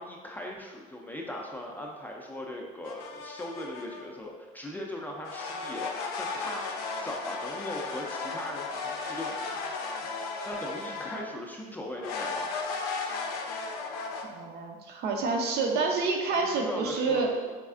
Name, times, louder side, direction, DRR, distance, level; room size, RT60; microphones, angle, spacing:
voice 1, 0.0-6.6 7.0-9.4 10.5-12.5 16.4-17.6, left 1 dB, 10° left, -1 dB, 0.4 m, -39 dB
sound 1, 2.8-4.0 5.2-11.4 12.0-14.2, left 4 dB, 75° left, 0.5 m, -35 dB
voice 2, 14.3-17.3, right 4 dB, 55° right, 2 dB, 0.6 m, -28 dB
4.2 x 2.3 x 2.4 m, 1.4 s
supercardioid pair, 85°, 20 cm